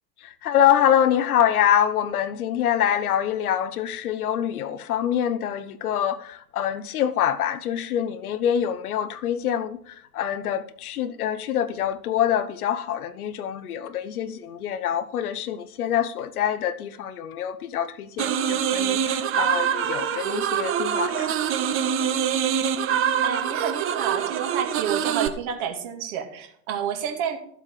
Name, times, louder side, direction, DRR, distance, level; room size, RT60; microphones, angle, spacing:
voice 1, 0.4-21.3, left 10 dB, 60° left, 1.0 m, -25 dB
sound 1, 18.2-25.3, right 8 dB, 25° right, 1.0 m, -25 dB
voice 2, 23.2-27.4, right 8 dB, 45° right, 2.5 m, -29 dB
13.5 x 7.7 x 4.9 m
figure-of-eight pair, 95°, 49 cm